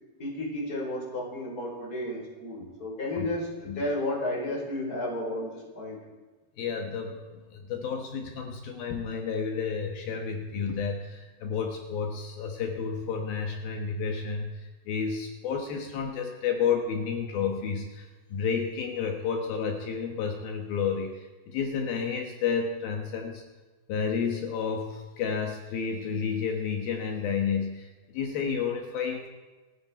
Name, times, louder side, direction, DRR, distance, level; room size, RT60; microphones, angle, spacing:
voice 1, 0.2-6.0, left 1 dB, 20° left, -2 dB, 4.8 m, -32 dB
voice 2, 6.6-18.0 18.3-23.4 23.9-27.9 28.1-29.3, left 6 dB, 70° left, 3 dB, 3.0 m, -31 dB
28.5 x 9.7 x 4.5 m, 1.3 s
omnidirectional pair, 4.8 m